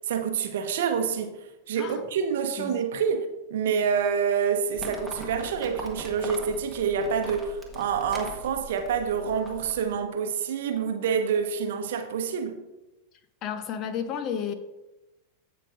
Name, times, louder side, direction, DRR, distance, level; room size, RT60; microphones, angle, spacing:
voice 1, 0.1-1.3 1.7-12.6, right 6 dB, 55° right, 0.9 m, -27 dB
Livestock farm animals working animals, 4.8-9.9, right 1 dB, 5° left, 1.4 m, -41 dB
voice 2, 13.4-14.5, left 7 dB, 35° left, 0.7 m, -32 dB
15.0 x 5.1 x 2.5 m
figure-of-eight pair, 90°, 0 cm